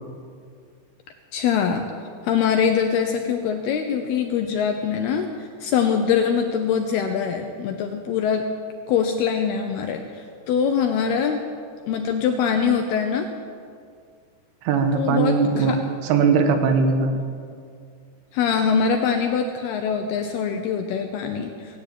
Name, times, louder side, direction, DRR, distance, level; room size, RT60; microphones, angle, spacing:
voice 1, 1.3-1.9 2.2-8.5 8.9-11.4 11.9-13.3 14.9-15.8 18.3-21.8, left 7 dB, 80° left, 4 dB, 2.4 m, -23 dB
voice 2, 14.7-15.7 16.0-17.1, right 5 dB, 90° right, 5 dB, 3.8 m, -19 dB
18.5 x 8.6 x 9.0 m, 2.2 s
omnidirectional pair, 5.4 m